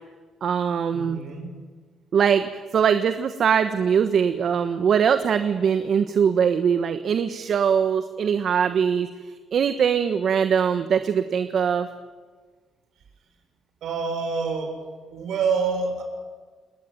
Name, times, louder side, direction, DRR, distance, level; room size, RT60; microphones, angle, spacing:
voice 1, 0.4-1.2 2.1-9.1 9.5-11.9, right 7 dB, 60° right, 9 dB, 1.4 m, -22 dB
voice 2, 0.9-1.5 13.8-14.7 15.1-16.0, right 5 dB, 75° right, 4 dB, 6.9 m, -26 dB
28.5 x 20.0 x 9.3 m, 1.5 s
cardioid pair, 90°, 0 cm